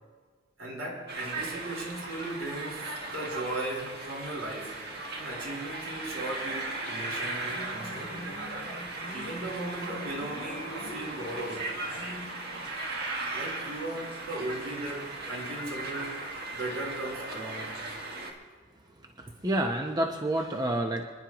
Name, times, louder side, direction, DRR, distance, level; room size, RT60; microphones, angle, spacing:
voice 1, 0.6-4.8 5.2-8.3 9.1-12.4 13.3-16.2 16.5-17.8, right 1 dB, 75° right, -3 dB, 4.3 m, -37 dB
sound 1, 1.1-18.3, right 2 dB, 55° right, 1.6 m, -37 dB
Motorcycle, 7.3-11.7, left 1 dB, 50° left, 1.9 m, -45 dB
voice 2, 19.0-21.1, right 1 dB, 20° right, 3 dB, 0.8 m, -29 dB
26.5 x 11.0 x 3.0 m, 1.5 s
head